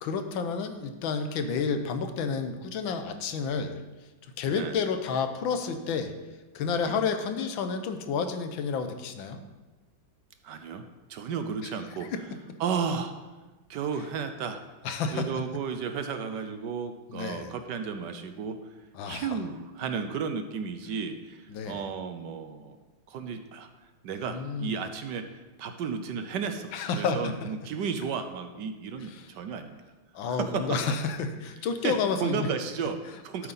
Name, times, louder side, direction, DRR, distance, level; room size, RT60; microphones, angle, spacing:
voice 1, 0.0-3.8 4.4-6.1 6.6-9.4 11.6-11.7 12.1-12.2 14.8-15.3 17.1-17.5 19.0-19.4 21.5-21.8 24.3-24.8 26.7-27.5 29.0-29.3 30.1-32.5, left 5 dB, 80° left, 8 dB, 1.6 m, -30 dB
voice 2, 10.4-10.8 11.1-12.1 12.6-13.1 13.7-14.6 15.1-18.6 19.1-22.8 23.1-23.7 24.0-29.8 30.3-30.8 31.8-31.9 32.2-33.5, right 6 dB, 70° right, 8 dB, 1.3 m, -33 dB
12.5 x 7.8 x 4.1 m, 1.2 s
omnidirectional pair, 2.1 m